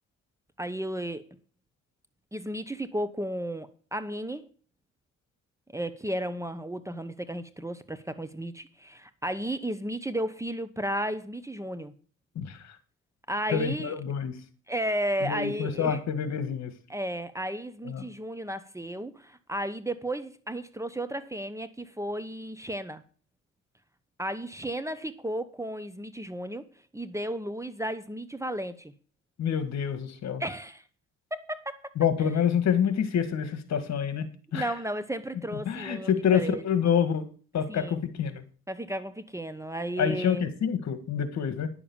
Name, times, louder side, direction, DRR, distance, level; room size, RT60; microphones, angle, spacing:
voice 1, 0.6-1.4 2.3-4.5 5.7-11.9 13.3-13.9 14.7-16.0 16.9-23.0 24.2-26.7 26.9-28.9 30.4-30.8 31.3-31.8 32.2-32.3 34.5-36.6 37.7-38.0 38.7-40.5, right 1 dB, 10° right, 0.9 m, -33 dB
voice 2, 13.5-14.4 15.2-16.7 17.8-18.0 29.4-30.4 32.0-34.7 35.6-37.2 37.5-38.4 40.0-41.7, left 8 dB, 65° left, 1.8 m, -27 dB
10.5 x 7.1 x 7.1 m
cardioid pair, 90°, 30 cm